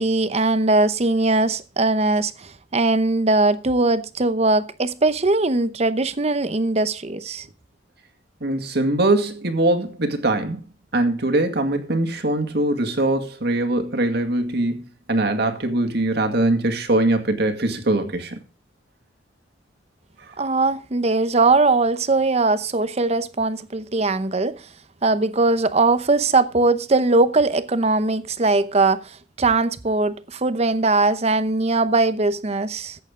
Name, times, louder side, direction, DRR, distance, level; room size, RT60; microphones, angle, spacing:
voice 1, 0.0-7.5 20.4-24.6 25.0-33.0, right 3 dB, 35° right, 0.8 m, -20 dB
voice 2, 8.4-10.6 10.9-18.4, right 2 dB, 60° right, 2.1 m, -22 dB
14.0 x 9.0 x 3.8 m
head